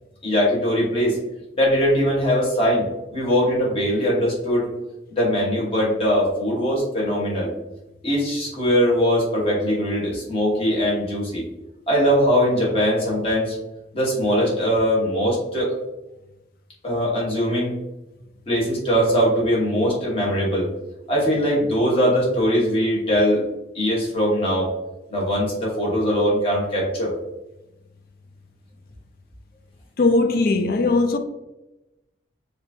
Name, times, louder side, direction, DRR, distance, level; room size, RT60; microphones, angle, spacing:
voice 1, 0.2-1.2 1.6-4.7 5.1-7.5 8.0-11.4 11.9-13.6 13.9-15.7 16.8-17.7 18.5-20.7 21.1-23.4 23.7-24.7 25.1-27.1, equal, 30° left, 1.2 m, -21 dB
voice 2, 30.0-31.2, left 3 dB, 50° left, 0.4 m, -19 dB
4.7 x 2.6 x 2.7 m
head